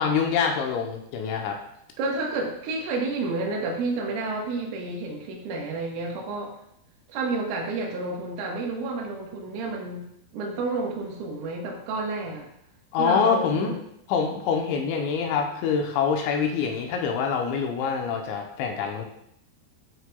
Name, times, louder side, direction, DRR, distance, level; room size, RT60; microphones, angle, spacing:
voice 1, 0.0-1.6 12.9-13.7 14.1-19.1, left 6 dB, 80° left, 2 dB, 3.0 m, -25 dB
voice 2, 2.0-6.5 7.1-10.1 10.3-12.5 13.0-13.8, right 3 dB, 90° right, -1 dB, 4.0 m, -30 dB
11.0 x 6.2 x 2.3 m, 0.74 s
omnidirectional pair, 5.6 m